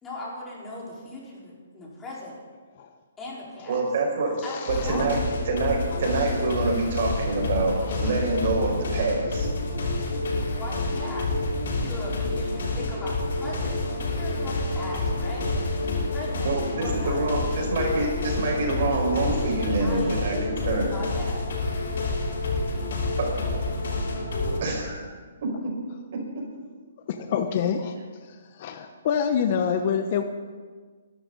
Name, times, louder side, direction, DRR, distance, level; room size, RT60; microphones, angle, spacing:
voice 1, 0.0-2.3 3.2-3.8 4.4-5.2 10.5-11.4 11.7-15.5 15.9-17.4 19.7-20.2 20.8-21.4, left 1 dB, 10° left, -6 dB, 4.5 m, -39 dB
voice 2, 3.7-4.4 4.7-5.2 5.5-9.5 16.4-20.9 23.2-23.3 24.6-25.0 25.4-25.7 26.1-26.4, right 3 dB, 55° right, 0 dB, 5.1 m, -26 dB
voice 3, 4.3-5.1 7.8-8.0 18.0-18.1 27.1-28.0 28.3-30.2, left 7 dB, 40° left, 8 dB, 1.0 m, -27 dB
sound 1, 4.7-24.6, left 2 dB, 70° left, 6.1 m, -28 dB
21.5 x 12.5 x 4.1 m, 1.5 s
hypercardioid pair, 155°, 0 cm